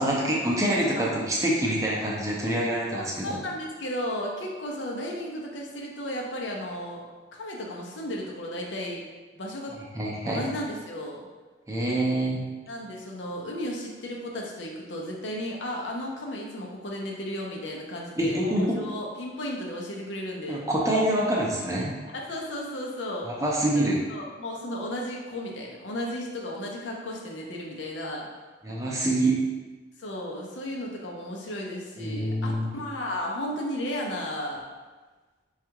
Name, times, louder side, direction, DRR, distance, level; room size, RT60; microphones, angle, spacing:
voice 1, 0.0-3.4 9.9-10.5 11.7-12.4 18.2-18.8 20.5-21.9 23.3-24.0 28.6-29.4 32.0-32.7, right 1 dB, 15° right, -4 dB, 0.5 m, -26 dB
voice 2, 2.9-7.1 7.3-9.0 9.3-9.7 10.2-11.3 12.7-20.7 22.1-23.3 23.7-28.3 30.0-34.7, left 1 dB, 75° left, -1 dB, 0.6 m, -34 dB
4.4 x 2.4 x 2.9 m, 1.3 s
head